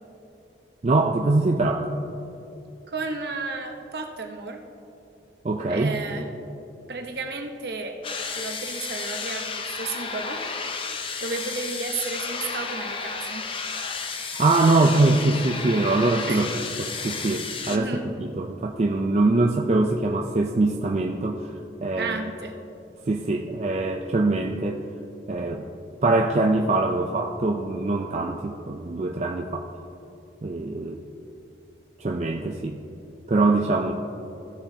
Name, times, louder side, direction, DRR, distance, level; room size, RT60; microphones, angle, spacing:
voice 1, 0.8-1.9 5.4-6.0 14.2-16.5 16.8-22.2 23.1-24.8 25.3-25.7 26.0-29.7 30.4-31.0 32.0-32.8 33.3-33.9, right 2 dB, 40° right, 1 dB, 0.4 m, -23 dB
voice 2, 2.9-4.6 5.7-6.3 6.9-8.0 8.3-10.4 11.2-13.5 16.3-16.5 17.7-18.0 21.9-22.5, right 3 dB, 65° right, 4 dB, 0.9 m, -33 dB
sound 1, 8.0-17.8, left 5 dB, 30° left, 0.5 m, -32 dB
15.5 x 6.8 x 2.8 m, 2.7 s
head